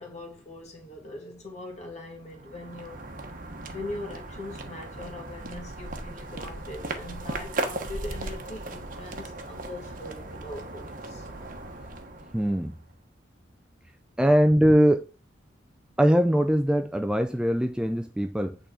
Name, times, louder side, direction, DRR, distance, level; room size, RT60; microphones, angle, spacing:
voice 1, 0.0-3.1 3.7-11.3, left 2 dB, 35° left, 2.2 m, -41 dB
sound 1, 2.2-12.9, right 2 dB, 45° right, 1.1 m, -37 dB
voice 2, 12.3-12.7 14.2-15.0 16.0-18.6, equal, 5° right, 0.3 m, -21 dB
9.0 x 3.9 x 4.7 m
head